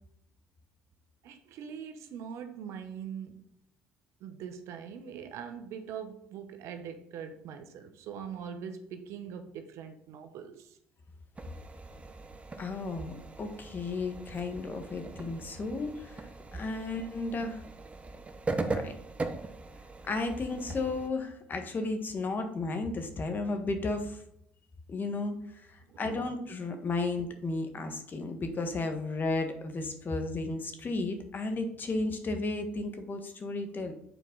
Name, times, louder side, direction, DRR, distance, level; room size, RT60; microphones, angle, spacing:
voice 1, 1.2-3.4 4.2-10.8 25.9-26.0, right 7 dB, 70° right, 0.9 m, -42 dB
sound 1, 11.4-21.1, right 3 dB, 25° right, 0.9 m, -40 dB
voice 2, 12.6-17.6 18.6-18.9 20.0-24.2 24.9-25.4 25.7-33.9, left 3 dB, 40° left, 1.5 m, -34 dB
8.1 x 4.5 x 3.9 m
supercardioid pair, 70°, 5 cm